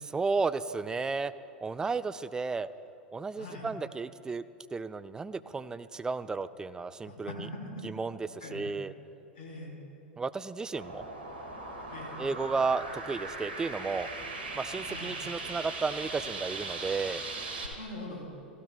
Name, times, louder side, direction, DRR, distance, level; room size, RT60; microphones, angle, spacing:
voice 1, 0.1-1.3 1.6-2.7 3.1-4.4 4.7-7.5 7.8-8.9 10.2-11.1 12.2-14.1 14.5-17.2, right 4 dB, 15° right, 14 dB, 0.4 m, -33 dB
voice 2, 3.4-3.7 7.1-7.8 8.4-8.7 9.3-9.7 11.9-12.2 14.9-15.1 17.7-18.2, left 2 dB, 65° left, -1 dB, 3.3 m, -42 dB
sound 1, 10.7-17.7, right 3 dB, 75° right, 2.0 m, -39 dB
16.0 x 15.0 x 2.3 m, 2.7 s
figure-of-eight pair, 90°, 6 cm